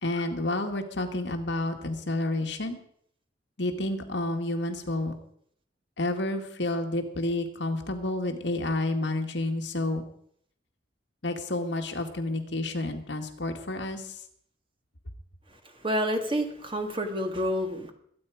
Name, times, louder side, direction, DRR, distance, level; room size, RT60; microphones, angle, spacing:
voice 1, 0.0-2.8 3.6-5.1 6.0-10.0 11.2-14.2, left 2 dB, 70° left, 4 dB, 1.9 m, -30 dB
voice 2, 15.5-17.9, equal, 30° right, 5 dB, 1.9 m, -29 dB
23.0 x 9.1 x 5.0 m, 0.66 s
head